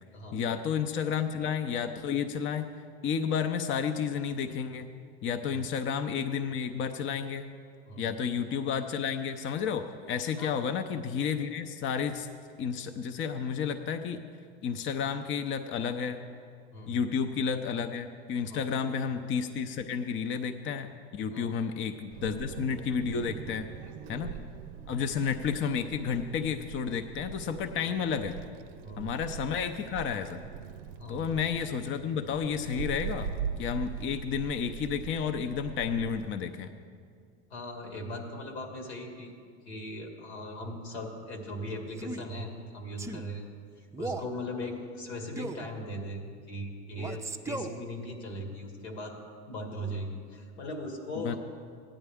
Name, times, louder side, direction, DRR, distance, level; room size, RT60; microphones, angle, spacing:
voice 1, 0.3-2.7 3.0-4.9 5.2-7.5 8.0-12.3 12.6-14.2 14.6-16.2 16.9-23.7 24.1-24.3 24.9-28.4 29.0-30.4 31.1-33.3 33.6-36.7 51.2-51.3, left 7 dB, 40° left, 7 dB, 0.6 m, -31 dB
voice 2, 18.4-18.9 21.3-21.6 23.8-23.9 24.3-24.4 24.9-25.0 28.8-29.1 31.0-31.3 37.5-39.3 39.7-43.4 43.8-46.2 46.5-49.2 49.5-51.4, equal, 90° left, 3 dB, 2.1 m, -39 dB
Wind, 22.1-36.3, right 7 dB, 85° right, 0.5 m, -41 dB
Male speech man speaking, 41.9-42.3 43.0-43.3 43.9-44.3 45.4-45.7 47.0-47.8, right 2 dB, 10° right, 0.4 m, -37 dB
15.5 x 10.0 x 3.5 m, 2.2 s
supercardioid pair, 100°, 32 cm